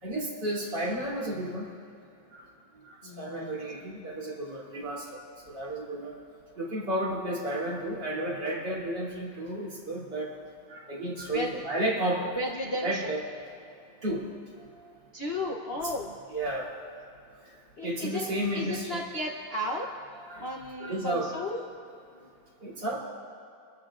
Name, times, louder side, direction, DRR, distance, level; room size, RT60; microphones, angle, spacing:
voice 1, 0.0-1.7 2.3-2.4 2.8-5.2 5.5-6.2 6.6-10.3 10.7-12.3 12.8-13.2 13.6-13.7 14.0-14.2 14.8-14.9 15.8-15.9 16.3-16.7 17.8-19.0 20.3-20.5 20.8-21.4 22.6-23.0, right 1 dB, 60° right, -5 dB, 3.8 m, -32 dB
voice 2, 3.0-3.6 11.3-11.6 12.3-13.1 15.1-16.2 17.8-19.9 20.4-21.6 22.1-22.3, left 1 dB, 45° left, -2 dB, 0.9 m, -34 dB
27.0 x 13.5 x 2.5 m, 2.5 s
omnidirectional pair, 2.1 m